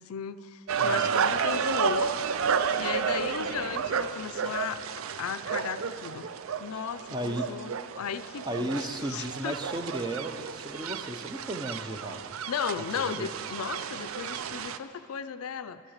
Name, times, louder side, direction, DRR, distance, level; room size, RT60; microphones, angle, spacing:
voice 1, 0.0-2.1 2.8-4.8 5.1-6.3 6.6-7.7 8.0-9.6 12.5-15.8, left 7 dB, 80° left, 13 dB, 0.4 m, -35 dB
sound 1, 0.7-14.8, right 6 dB, 65° right, 0.4 m, -31 dB
voice 2, 0.8-1.4 7.1-7.5 8.5-12.3 13.0-13.3, right 1 dB, 20° right, 6 dB, 0.6 m, -35 dB
11.5 x 9.0 x 6.5 m, 2.3 s
head